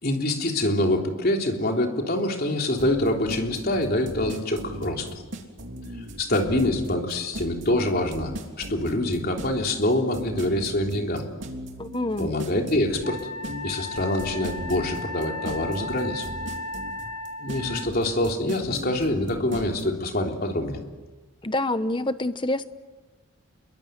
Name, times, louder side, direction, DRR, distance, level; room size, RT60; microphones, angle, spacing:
voice 1, 0.0-5.2 6.2-8.3 8.6-11.3 12.2-13.2 13.6-16.3 17.4-20.8, left 1 dB, 45° left, 2 dB, 3.5 m, -25 dB
sound 1, 2.8-19.8, right 1 dB, 55° right, 3.4 m, -37 dB
voice 2, 11.8-12.3 21.4-22.7, left 1 dB, 20° left, 12 dB, 1.0 m, -27 dB
Wind instrument woodwind instrument, 13.0-17.9, left 2 dB, 90° left, 2.4 m, -35 dB
28.0 x 22.5 x 9.4 m, 1.2 s
head